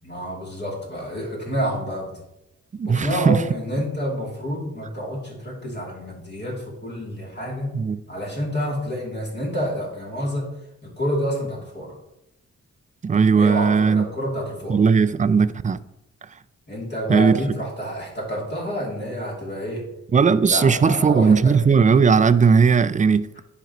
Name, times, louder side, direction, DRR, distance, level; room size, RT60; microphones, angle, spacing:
voice 1, 0.0-2.2 2.8-7.7 8.1-10.5 10.8-11.9 13.3-14.8 16.7-19.8 20.4-21.6, equal, 35° left, 2.9 m, -28 dB
voice 2, 2.8-3.4 7.7-8.0 13.0-14.1 14.7-15.8 17.1-17.4 20.1-23.3, right 5 dB, 25° right, 0.4 m, -17 dB
10.5 x 5.2 x 3.0 m
cardioid pair, 75°, 29 cm